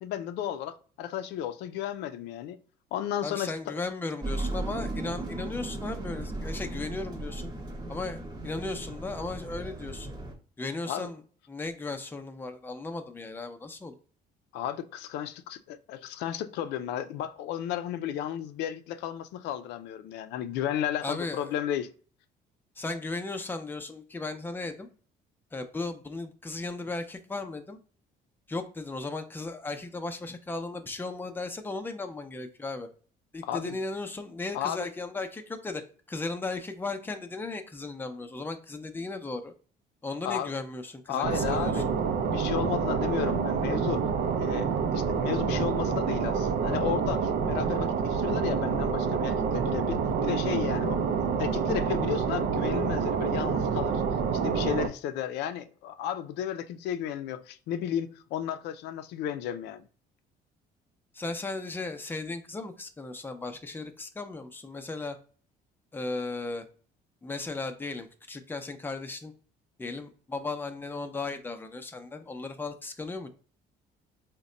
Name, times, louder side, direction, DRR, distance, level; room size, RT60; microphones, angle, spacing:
voice 1, 0.0-2.6 2.9-3.7 10.9-11.1 14.5-21.9 33.4-33.8 34.5-34.9 40.2-40.5 41.1-41.9 42.3-44.1 44.4-51.0 51.4-54.0 54.4-59.8, left 10 dB, 85° left, 0.4 m, -33 dB
voice 2, 3.2-7.5 7.9-10.2 10.6-11.2 11.5-14.0 21.0-21.5 22.8-24.9 25.5-27.8 28.5-32.9 33.3-35.8 36.1-39.5 40.0-41.9 61.1-65.2 65.9-66.7 67.2-69.3 69.8-73.3, left 3 dB, 10° left, 0.5 m, -36 dB
sound 1, 4.2-10.3, right 2 dB, 25° right, 0.9 m, -36 dB
sound 2, 41.2-54.9, right 6 dB, 60° right, 0.5 m, -28 dB
4.0 x 2.2 x 3.7 m
cardioid pair, 110°, 17 cm